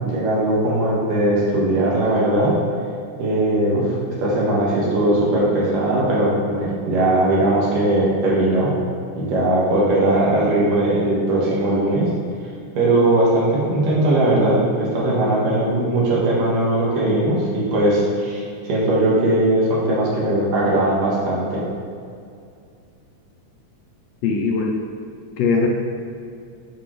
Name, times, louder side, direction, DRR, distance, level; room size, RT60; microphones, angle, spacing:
voice 1, 0.0-2.5 3.2-8.7 9.2-12.1 12.8-18.4 18.7-21.6, right 1 dB, 90° right, -6 dB, 3.2 m, -19 dB
voice 2, 24.2-24.8 25.4-25.7, left 4 dB, 85° left, 0 dB, 1.4 m, -20 dB
8.6 x 5.8 x 3.2 m, 2.4 s
omnidirectional pair, 3.7 m